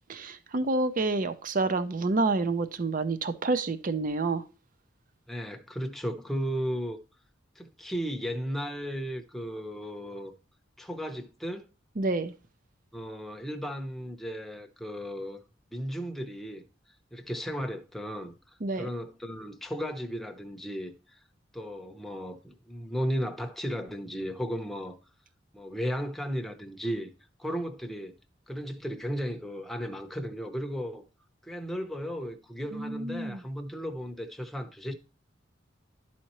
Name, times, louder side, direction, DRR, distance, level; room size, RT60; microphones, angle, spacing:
voice 1, 0.1-4.5 12.0-12.3 18.6-18.9 32.7-33.4, right 3 dB, 45° right, 0.6 m, -28 dB
voice 2, 5.3-7.0 7.6-10.3 10.8-11.7 12.9-15.4 15.7-16.6 17.1-21.2 21.5-25.0 25.5-27.1 27.4-28.1 28.5-31.0 31.4-34.9, equal, ahead, 0.8 m, -35 dB
12.0 x 4.3 x 3.0 m
head